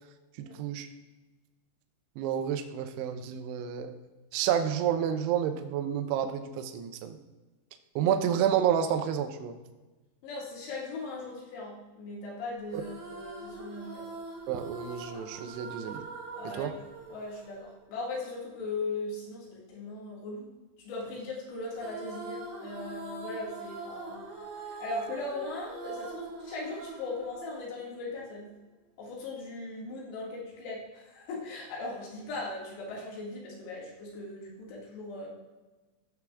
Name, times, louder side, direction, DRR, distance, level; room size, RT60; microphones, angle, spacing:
voice 1, 0.4-0.9 2.2-4.0 4.3-7.2 8.0-9.6 14.5-16.1 16.5-16.7, right 9 dB, 90° right, 7 dB, 2.4 m, -29 dB
voice 2, 10.2-14.2 16.4-16.8 17.1-20.5 20.8-24.3 24.8-28.6 29.0-35.3, left 2 dB, 65° left, -4 dB, 4.1 m, -39 dB
sound 1, 12.7-18.2 21.7-28.1, right 3 dB, 60° right, 1.4 m, -43 dB
15.0 x 6.2 x 2.4 m, 1.2 s
omnidirectional pair, 5.6 m